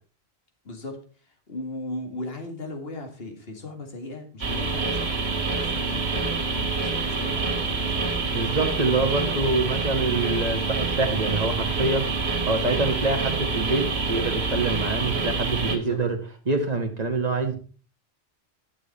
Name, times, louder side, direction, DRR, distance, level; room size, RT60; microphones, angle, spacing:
voice 1, 0.6-8.6 9.0-9.7 15.8-16.0, left 2 dB, 70° left, 3 dB, 2.1 m, -38 dB
sound 1, 4.4-15.8, right 4 dB, 80° right, 2.3 m, -27 dB
voice 2, 8.3-16.2 16.5-17.6, right 3 dB, 40° right, 4 dB, 1.7 m, -26 dB
11.5 x 7.0 x 4.2 m, 0.38 s
omnidirectional pair, 1.0 m